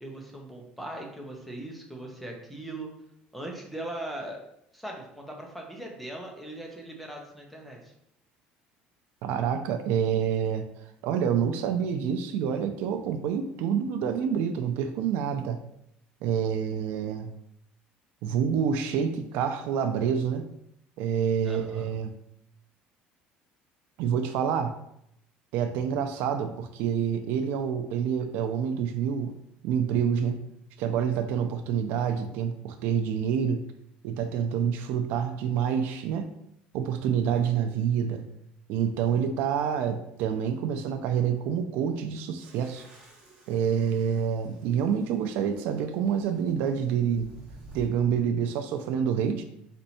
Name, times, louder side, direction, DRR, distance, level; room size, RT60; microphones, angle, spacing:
voice 1, 0.0-2.9 3.3-4.4 4.7-7.9 21.4-21.9, right 1 dB, ahead, 0 dB, 0.6 m, -39 dB
voice 2, 9.2-10.7 11.0-15.6 16.2-17.3 18.2-20.5 21.0-22.2 24.0-24.8 25.5-29.3 29.6-30.4 30.8-33.6 34.0-36.3 36.7-38.3 38.7-42.9 43.5-47.3 47.7-49.4, right 7 dB, 70° right, 8 dB, 0.4 m, -27 dB
sound 1, 42.4-47.9, right 1 dB, 25° right, 1.3 m, -52 dB
4.3 x 2.7 x 4.1 m, 0.76 s
cardioid pair, 170°, 3 cm